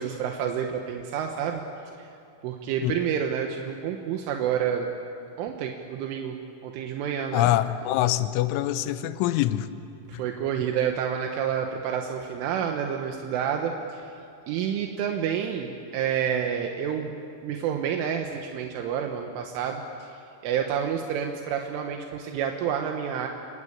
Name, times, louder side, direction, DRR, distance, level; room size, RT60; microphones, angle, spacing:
voice 1, 0.0-1.6 2.0-2.1 2.4-4.9 5.4-6.4 6.6-7.5 10.1-14.1 14.5-17.1 17.4-23.3, right 8 dB, 80° right, 3 dB, 3.7 m, -29 dB
voice 2, 7.3-9.7 10.1-10.2, left 14 dB, 80° left, 12 dB, 3.2 m, -24 dB
28.5 x 23.0 x 8.7 m, 2.8 s
omnidirectional pair, 5.7 m